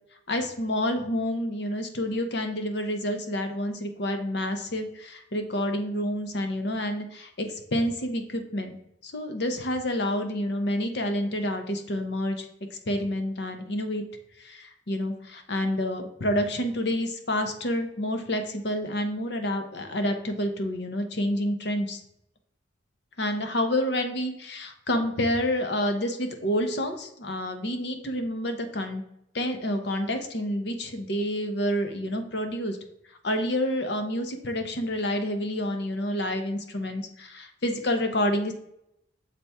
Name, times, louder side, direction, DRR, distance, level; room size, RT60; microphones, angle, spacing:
voice 1, 0.3-8.8 9.0-12.5 12.9-14.0 14.4-22.0 23.2-29.0 29.3-32.8 33.2-38.5, left 1 dB, 60° left, 6 dB, 0.8 m, -28 dB
6.7 x 4.3 x 3.4 m, 0.78 s
head